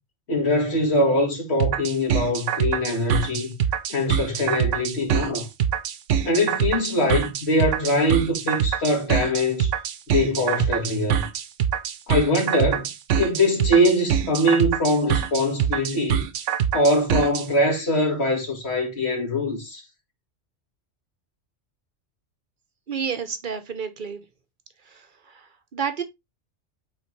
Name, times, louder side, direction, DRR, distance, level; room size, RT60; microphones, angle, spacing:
voice 1, 0.3-3.5 3.9-5.5 6.2-9.7 10.1-11.2 12.1-12.9 13.1-16.2 16.7-19.8, left 1 dB, 60° left, 2.3 m, -22 dB
sound 1, 1.6-17.4, right 9 dB, 80° right, 1.0 m, -24 dB
voice 2, 22.9-24.2 24.9-26.0, right 7 dB, 50° right, 0.8 m, -31 dB
8.5 x 3.6 x 3.2 m
omnidirectional pair, 1.2 m